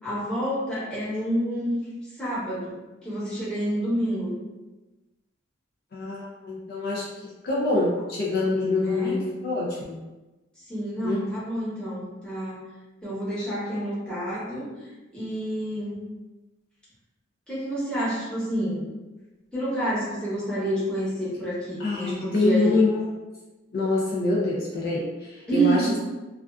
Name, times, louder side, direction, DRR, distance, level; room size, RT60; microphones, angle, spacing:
voice 1, 0.0-2.7 3.0-4.3 8.8-9.2 10.7-12.6 13.0-15.9 17.5-18.8 19.5-23.0 25.5-26.0, right 1 dB, 5° left, -10 dB, 0.9 m, -28 dB
voice 2, 5.9-10.0 11.0-11.2 21.8-22.9 23.7-26.0, left 2 dB, 50° left, -4 dB, 0.4 m, -25 dB
2.4 x 2.3 x 2.2 m, 1.1 s
head